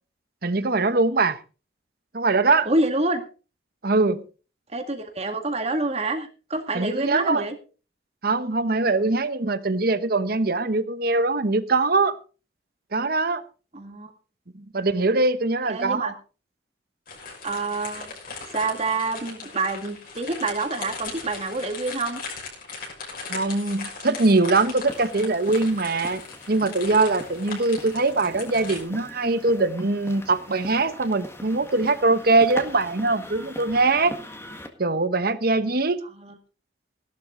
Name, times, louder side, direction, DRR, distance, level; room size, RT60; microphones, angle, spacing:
voice 1, 0.4-1.4 2.1-2.7 3.8-4.2 6.7-7.4 8.2-12.2 12.9-13.4 14.5-16.1 23.3-26.2 26.5-34.2 34.8-36.0, right 3 dB, 55° right, 1.1 m, -22 dB
voice 2, 2.7-3.2 4.7-7.5 13.7-14.1 15.7-16.1 17.4-18.1 18.5-22.2 36.2-36.3, right 2 dB, 35° right, 2.1 m, -27 dB
sound 1, 17.1-28.8, left 4 dB, 55° left, 5.9 m, -38 dB
sound 2, 24.9-34.7, left 1 dB, 15° left, 1.7 m, -42 dB
16.0 x 12.0 x 3.8 m
head